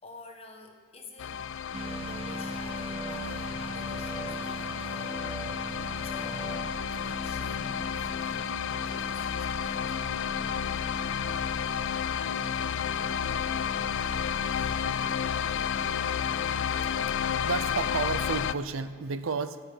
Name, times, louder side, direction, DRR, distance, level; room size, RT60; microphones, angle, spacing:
voice 1, 0.0-1.5 2.1-10.0 14.3-14.8, left 3 dB, 30° left, 2 dB, 1.3 m, -50 dB
sound 1, 1.2-18.5, left 8 dB, 60° left, 0.3 m, -31 dB
sound 2, 1.7-17.2, right 1 dB, 30° right, 0.5 m, -41 dB
sound 3, 1.8-9.0, equal, 10° left, 1.8 m, -43 dB
voice 2, 17.4-19.6, right 5 dB, 80° right, 12 dB, 0.6 m, -32 dB
14.0 x 5.7 x 7.8 m, 2.1 s
head